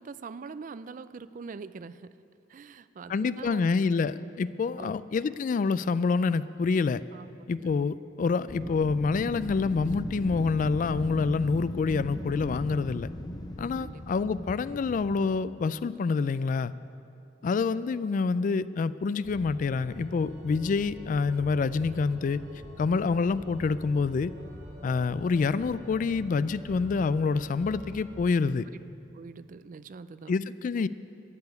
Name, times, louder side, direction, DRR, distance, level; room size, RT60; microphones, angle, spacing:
voice 1, 0.0-2.2 2.5-3.6 4.8-5.0 7.1-7.3 7.6-7.7 13.8-14.2 29.1-30.3, right 4 dB, 45° right, 15 dB, 0.4 m, -43 dB
voice 2, 3.1-7.0 7.5-13.1 13.6-16.7 17.4-22.4 22.8-24.3 24.8-28.6 30.3-30.9, left 4 dB, 45° left, 16 dB, 0.3 m, -27 dB
Wind, 8.5-15.4, left 1 dB, 25° left, 0.8 m, -38 dB
Organ, 19.2-28.4, equal, 85° right, 2.8 m, -46 dB
13.5 x 6.9 x 9.4 m, 2.6 s
head